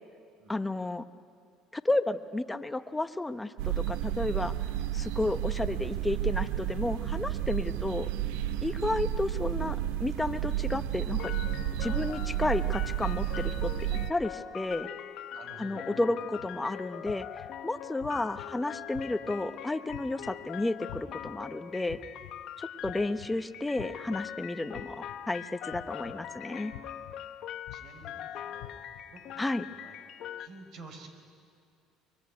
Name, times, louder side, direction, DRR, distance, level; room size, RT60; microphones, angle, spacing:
voice 1, 0.5-1.1 1.7-4.5 4.9-8.1 8.6-11.3 11.8-13.7 14.1-14.9 15.6-22.0 22.6-26.7 29.4-29.7, left 2 dB, 10° left, 10 dB, 1.0 m, -32 dB
sound 1, 3.6-14.1, right 12 dB, 90° right, 0.8 m, -31 dB
sound 2, 11.2-30.5, left 10 dB, 60° left, 1.2 m, -42 dB
voice 2, 11.8-12.1 15.3-16.2 18.1-18.3 22.7-23.2 26.1-26.3 27.1-27.2 27.7-28.7 29.1-31.1, right 3 dB, 60° right, 5 dB, 4.7 m, -51 dB
sound 3, 16.4-16.5 17.0-17.5 18.0-18.4 18.9-19.3 19.9-20.3 20.9-21.3 21.9-22.3 22.8-23.3 23.8-24.2 24.7-25.2 25.7-26.1 26.7-27.1 27.7-28.1 28.6-29.0, left 16 dB, 85° left, 1.2 m, -45 dB
24.0 x 22.5 x 9.6 m, 2.4 s
supercardioid pair, 100°, 0 cm